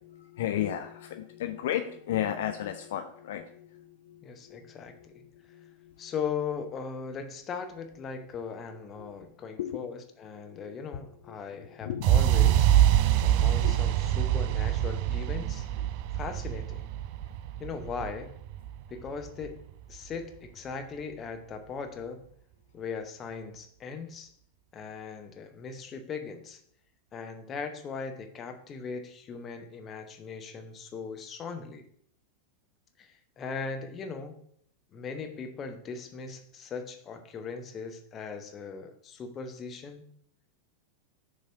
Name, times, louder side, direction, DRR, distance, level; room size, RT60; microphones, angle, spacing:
voice 1, 0.2-6.1 8.7-9.2 9.6-9.9 10.5-10.8 11.3-12.0 13.6-13.7, left 11 dB, 55° left, 6 dB, 0.4 m, -35 dB
voice 2, 4.2-5.1 6.0-12.7 13.2-15.7 16.1-16.9 17.6-18.3 18.9-19.6 19.9-22.2 22.7-24.3 24.7-26.6 27.1-31.8 33.0-34.4 34.9-40.0, left 5 dB, 25° left, 6 dB, 0.8 m, -39 dB
sound 1, 12.0-19.9, right 11 dB, 45° right, 0.3 m, -25 dB
6.6 x 3.2 x 5.4 m, 0.64 s
figure-of-eight pair, 90°, 0 cm